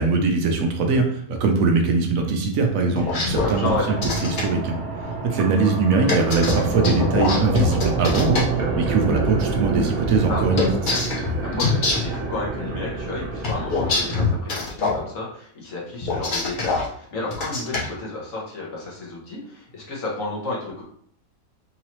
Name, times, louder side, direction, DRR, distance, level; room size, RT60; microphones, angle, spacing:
voice 1, 0.0-4.0 4.2-4.8 5.2-10.7, right 4 dB, 70° right, 3 dB, 1.0 m, -21 dB
sound 1, 2.9-4.4 6.1-8.4 10.6-12.2 13.4-15.0 16.0-16.9 17.3-17.9, left 4 dB, 45° left, 0.7 m, -24 dB
sound 2, 3.0-14.4, right 3 dB, 85° right, 1.3 m, -27 dB
voice 2, 3.4-4.0 10.3-10.8 11.4-20.8, left 2 dB, 65° left, -4 dB, 1.4 m, -31 dB
3.9 x 2.8 x 3.0 m, 0.63 s
omnidirectional pair, 1.5 m